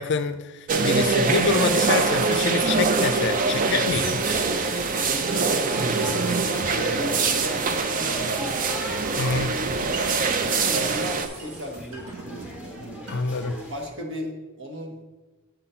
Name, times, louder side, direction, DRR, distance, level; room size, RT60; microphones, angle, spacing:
voice 1, 0.0-4.2 9.2-9.5 13.1-13.6, left 4 dB, 50° left, 0.4 m, -26 dB
sound 1, 0.7-11.3, right 4 dB, 35° right, 0.5 m, -24 dB
sound 2, 1.3-13.9, left 1 dB, 5° right, 1.0 m, -43 dB
sound 3, 1.3-13.5, right 1 dB, 85° right, 1.4 m, -41 dB
voice 2, 5.3-8.6 9.2-9.4 9.7-15.0, right 1 dB, 55° right, 1.3 m, -36 dB
7.7 x 4.1 x 5.6 m
head